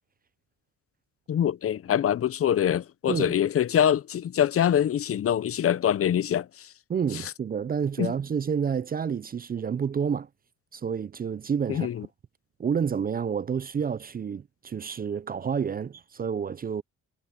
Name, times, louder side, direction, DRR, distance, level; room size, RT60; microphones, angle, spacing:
voice 1, 1.3-6.5 8.0-8.1 11.7-12.0, left 9 dB, 50° left, 0.7 m, -24 dB
voice 2, 3.1-3.4 6.9-10.3 10.7-11.9 12.6-16.8, right 7 dB, 30° right, 0.5 m, -29 dB
cardioid pair, 90°, 30 cm